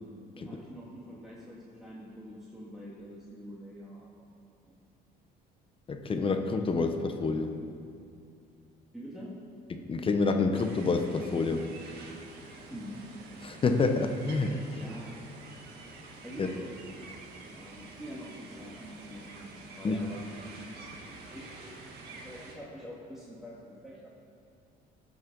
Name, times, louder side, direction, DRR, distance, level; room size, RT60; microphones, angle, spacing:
voice 1, 0.3-4.3 8.9-9.3 12.4-13.0 13.5-13.6 14.7-15.2 16.2-16.9 17.4-20.3 21.1-21.8 22.2-24.1, equal, 5° right, -6 dB, 1.9 m, -45 dB
voice 2, 5.9-7.5 9.9-11.7 13.4-14.6 16.4-16.5 19.8-20.0, left 3 dB, 30° left, 5 dB, 1.0 m, -27 dB
sound 1, 10.5-22.5, right 3 dB, 70° right, 1.8 m, -48 dB
17.0 x 6.4 x 5.3 m, 2.5 s
cardioid pair, 110°, 17 cm